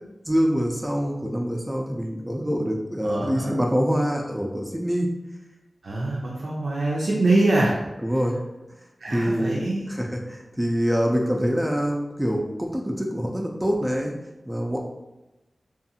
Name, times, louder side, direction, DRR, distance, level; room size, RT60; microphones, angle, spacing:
voice 1, 0.3-5.1 8.0-8.4 9.1-14.1 14.5-14.8, equal, 10° right, 0 dB, 0.4 m, -25 dB
voice 2, 3.0-3.6 5.8-7.8 9.0-9.9, right 2 dB, 90° right, -4 dB, 0.4 m, -24 dB
2.6 x 2.4 x 2.6 m, 0.98 s
wide cardioid pair, 60°, 0 cm